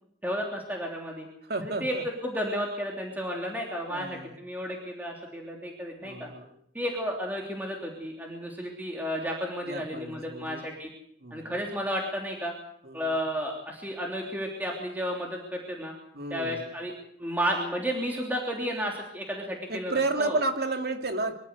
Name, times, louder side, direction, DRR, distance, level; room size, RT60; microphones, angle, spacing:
voice 1, 0.2-1.3 1.6-1.9 2.2-6.3 6.7-10.9 11.3-12.5 12.9-15.9 16.3-16.9 17.2-20.4, equal, 10° right, 0 dB, 3.2 m, -32 dB
voice 2, 1.4-2.0 3.9-4.4 6.0-6.5 9.7-10.6 11.2-11.5 12.8-13.2 16.1-16.6 19.7-21.3, right 3 dB, 65° right, 5 dB, 2.7 m, -32 dB
24.5 x 13.5 x 8.2 m, 0.69 s
head